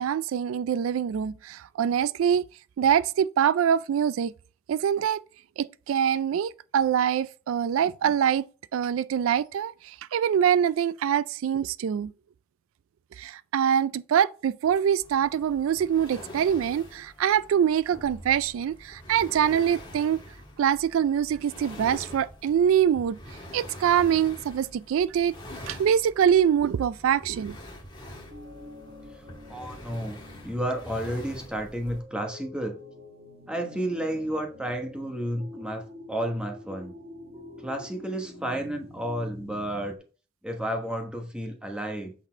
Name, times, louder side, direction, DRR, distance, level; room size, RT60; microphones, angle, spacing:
voice 1, 0.0-2.5 2.8-4.3 4.7-5.2 5.6-8.4 8.7-12.1 13.2-20.2 20.6-23.2 23.5-25.3 25.7-27.6, right 8 dB, 90° right, 0.3 m, -24 dB
sound 1, 15.0-32.0, left 1 dB, 20° left, 1.5 m, -45 dB
sound 2, 28.1-40.0, left 1 dB, 30° right, 1.2 m, -46 dB
voice 2, 29.1-32.8 33.5-36.9 37.6-40.0 40.4-42.1, right 1 dB, 5° right, 1.1 m, -32 dB
8.1 x 4.1 x 4.4 m
head